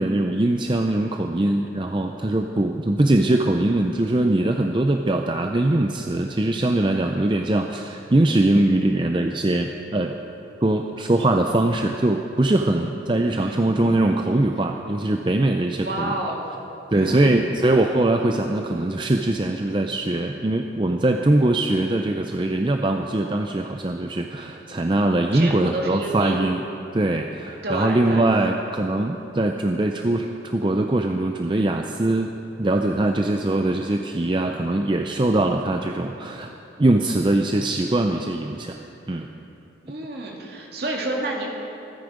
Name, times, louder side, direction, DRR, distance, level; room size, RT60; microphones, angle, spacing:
voice 1, 0.0-10.2 10.6-16.1 16.9-26.6 26.9-32.3 32.6-36.5 36.8-38.8 39.1-39.3, right 2 dB, 25° right, 4 dB, 0.5 m, -22 dB
voice 2, 13.1-13.7 15.8-16.5 16.9-17.5 25.3-26.5 27.6-28.2 39.8-41.5, right 1 dB, 55° right, -1 dB, 2.4 m, -29 dB
25.0 x 9.7 x 5.1 m, 2.9 s
head